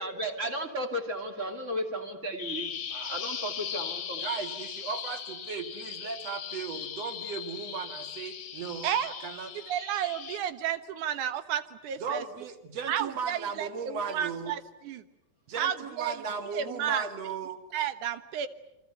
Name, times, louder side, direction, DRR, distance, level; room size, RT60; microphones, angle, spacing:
voice 1, 0.0-2.7 3.1-4.3, equal, 25° right, 5 dB, 2.6 m, -34 dB
Bird vocalization bird call bird song, 2.4-10.4, left 8 dB, 50° left, 1.8 m, -38 dB
voice 2, 4.2-8.9 9.2-9.5 12.0-14.6 15.5-17.6, right 5 dB, 55° right, 7 dB, 3.0 m, -36 dB
voice 3, 9.5-12.2 12.9-15.0 15.6-16.2 16.5-17.1 17.7-18.5, right 9 dB, 75° right, 11 dB, 2.7 m, -32 dB
28.0 x 25.5 x 8.1 m, 0.95 s
omnidirectional pair, 3.6 m